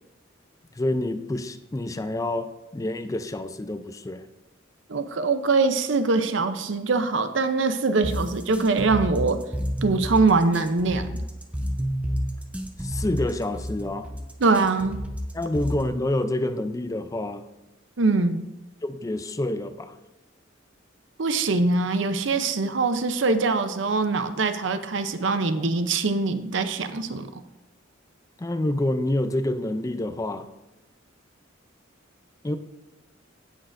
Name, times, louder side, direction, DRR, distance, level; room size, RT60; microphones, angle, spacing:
voice 1, 0.7-4.3 12.8-14.1 15.3-17.5 18.8-20.0 28.4-30.5 32.4-32.6, left 1 dB, 15° left, 10 dB, 0.4 m, -28 dB
voice 2, 4.9-9.4 9.8-11.2 14.4-15.0 18.0-18.5 21.2-27.4, right 3 dB, 70° right, 10 dB, 0.6 m, -23 dB
sound 1, 8.0-16.0, equal, 5° right, 0.7 m, -30 dB
17.0 x 6.3 x 2.6 m, 1.0 s
head